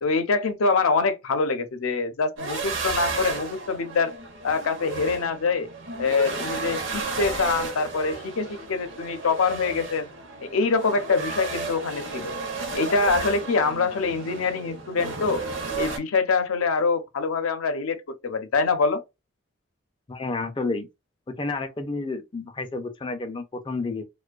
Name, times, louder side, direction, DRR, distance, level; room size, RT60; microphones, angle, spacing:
voice 1, 0.0-4.1 4.4-5.7 6.0-10.1 10.4-12.3 12.7-15.4 15.8-19.0, left 4 dB, 80° left, 0.6 m, -25 dB
sound 1, 2.4-16.0, right 3 dB, 60° right, 0.6 m, -33 dB
voice 2, 20.1-20.9 21.3-24.0, left 3 dB, 25° left, 0.3 m, -30 dB
2.5 x 2.2 x 2.3 m
head